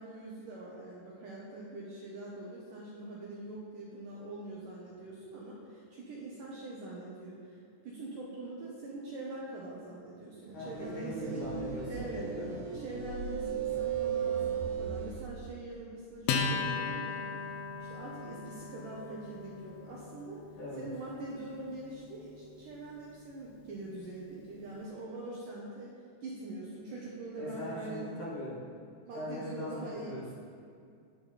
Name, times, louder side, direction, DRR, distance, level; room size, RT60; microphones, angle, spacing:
voice 1, 0.0-7.6 7.8-11.5 11.9-12.3 12.7-17.2 17.8-20.4 20.8-26.0 26.2-28.2 29.0-30.1, right 2 dB, 65° right, -5 dB, 2.4 m, -43 dB
voice 2, 10.5-12.7 13.6-13.8 20.6-20.9 27.4-28.6 29.1-30.3, left 1 dB, 50° left, -7 dB, 3.5 m, -41 dB
sound 1, 10.6-15.3, right 7 dB, 85° right, 3.4 m, -35 dB
Acoustic guitar, 16.3-23.1, left 5 dB, 80° left, 2.5 m, -38 dB
11.5 x 9.6 x 4.3 m, 2.4 s
omnidirectional pair, 5.1 m